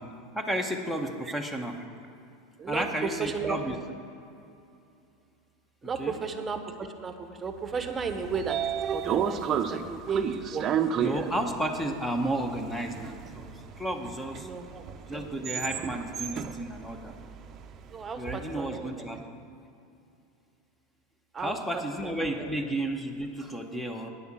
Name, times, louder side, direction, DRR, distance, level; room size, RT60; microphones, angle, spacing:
voice 1, 0.3-1.8 2.7-3.7 6.0-6.1 11.0-13.5 13.8-14.5 15.1-17.2 18.2-19.2 21.4-24.1, right 1 dB, 10° left, 5 dB, 1.0 m, -32 dB
voice 2, 2.6-3.6 5.8-10.7 10.9-11.4 14.4-14.8 17.9-19.2 21.3-22.7, right 5 dB, 20° right, 7 dB, 1.0 m, -35 dB
Train / Sliding door, 7.9-18.1, right 8 dB, 35° right, 0.6 m, -32 dB
9.4 x 7.0 x 7.4 m, 2.6 s
supercardioid pair, 110°, 0 cm